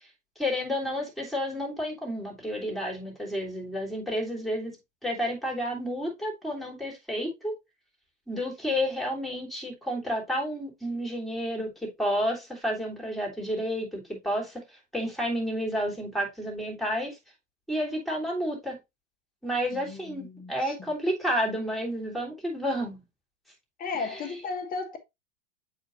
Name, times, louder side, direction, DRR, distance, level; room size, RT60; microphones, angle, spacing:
voice 1, 0.4-4.7 5.0-7.5 8.3-11.7 12.0-14.6 14.9-17.2 17.7-18.8 19.4-23.0 24.1-24.2, equal, ahead, 3.2 m, -30 dB
voice 2, 19.7-20.7 23.8-25.0, left 4 dB, 25° left, 1.3 m, -35 dB
8.1 x 5.0 x 2.5 m
hypercardioid pair, 120°, 37 cm